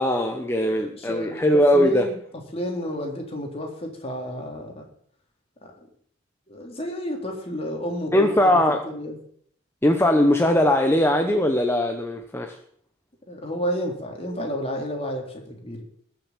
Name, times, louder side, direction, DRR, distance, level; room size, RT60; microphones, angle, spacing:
voice 1, 0.0-2.0 8.1-8.8 9.8-12.6, left 1 dB, 10° left, 4 dB, 1.1 m, -20 dB
voice 2, 0.6-1.4 1.7-2.2 2.5-4.9 5.6-5.9 6.5-9.2 13.3-15.8, equal, 30° left, 1 dB, 3.5 m, -31 dB
19.5 x 7.0 x 7.5 m, 0.64 s
head